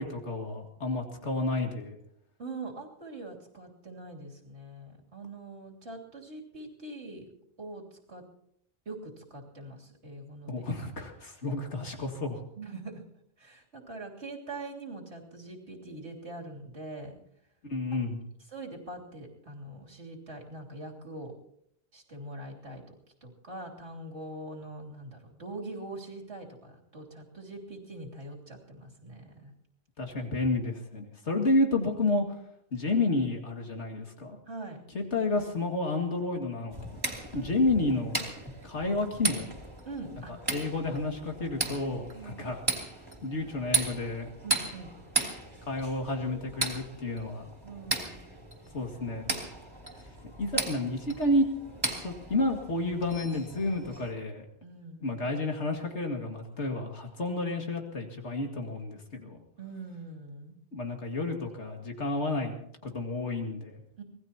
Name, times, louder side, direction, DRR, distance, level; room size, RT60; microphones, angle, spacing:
voice 1, 0.0-2.0 10.5-12.4 17.6-18.2 30.0-32.2 32.7-34.4 34.9-37.0 37.3-38.3 38.6-39.5 40.5-42.6 43.2-44.3 45.7-47.5 48.7-49.3 50.4-51.4 52.0-54.4 55.0-59.4 60.7-62.5 62.8-63.8, left 2 dB, 80° left, 3 dB, 2.5 m, -30 dB
voice 2, 2.4-7.3 7.6-8.2 8.8-10.6 12.6-13.0 13.4-17.2 18.5-21.4 21.9-22.8 23.2-29.5 34.5-34.8 37.3-37.5 39.8-40.3 42.1-42.5 44.4-44.9 47.6-48.2 54.6-55.0 59.6-60.6 64.0-64.1, right 2 dB, 75° right, -2 dB, 3.4 m, -43 dB
sound 1, 36.7-54.1, right 3 dB, 20° right, 3.0 m, -36 dB
25.5 x 19.0 x 2.9 m, 0.73 s
omnidirectional pair, 1.2 m